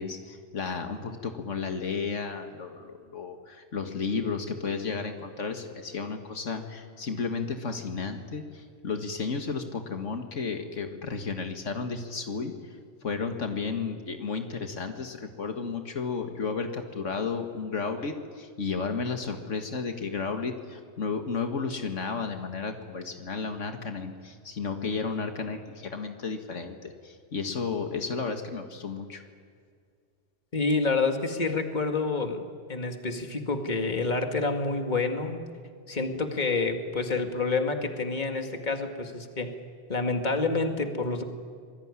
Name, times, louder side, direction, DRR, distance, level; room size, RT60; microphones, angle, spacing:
voice 1, 0.0-12.8 13.0-29.2, left 5 dB, 85° left, 5 dB, 2.1 m, -33 dB
voice 2, 30.5-32.4 32.7-35.4 35.9-39.5 39.9-41.2, left 3 dB, 40° left, 5 dB, 2.2 m, -28 dB
26.5 x 20.0 x 9.8 m, 2.1 s
omnidirectional pair, 1.2 m